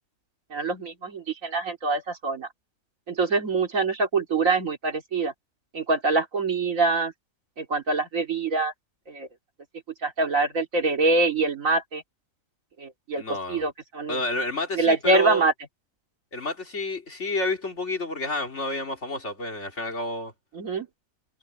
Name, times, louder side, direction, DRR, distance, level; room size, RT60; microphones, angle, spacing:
voice 1, 0.5-2.5 3.1-5.3 5.7-7.1 7.6-8.7 9.1-9.3 10.0-12.0 12.8-13.2 13.5-14.2 14.8-15.5 20.5-20.9, right 3 dB, 75° right, 2.8 m, -24 dB
voice 2, 13.2-13.7 14.1-15.4 16.3-20.3, left 1 dB, 60° left, 3.3 m, -30 dB
omnidirectional pair, 1.4 m